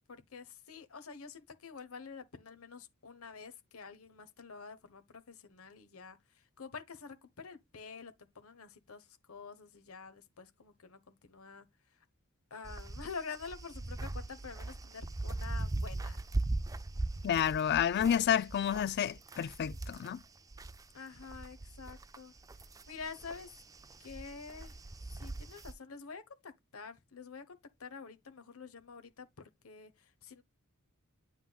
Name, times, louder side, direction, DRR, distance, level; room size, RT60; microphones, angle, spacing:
voice 1, 0.1-11.7 12.5-16.2 20.9-22.3 22.9-23.5 24.0-24.8 25.1-30.4, left 5 dB, 85° left, 1.0 m, -48 dB
sound 1, 12.6-20.8 21.2-25.7, right 2 dB, 15° right, 0.4 m, -40 dB
voice 2, 17.2-20.2, left 9 dB, 50° left, 0.3 m, -30 dB
9.3 x 5.7 x 2.3 m
head